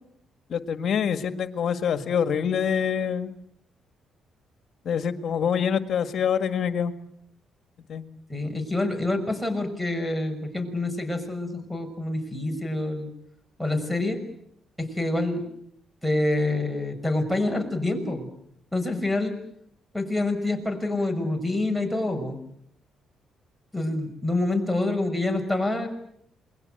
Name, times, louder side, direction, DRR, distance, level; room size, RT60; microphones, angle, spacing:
voice 1, 0.5-3.3 4.9-6.9 7.9-8.0, left 7 dB, 60° left, 9 dB, 1.8 m, -25 dB
voice 2, 8.3-13.1 13.6-14.2 14.8-15.4 16.0-18.3 18.7-19.3 19.9-22.4 23.7-25.9, left 2 dB, ahead, 9 dB, 6.3 m, -27 dB
28.0 x 21.5 x 7.9 m, 0.72 s
cardioid pair, 90°, 0 cm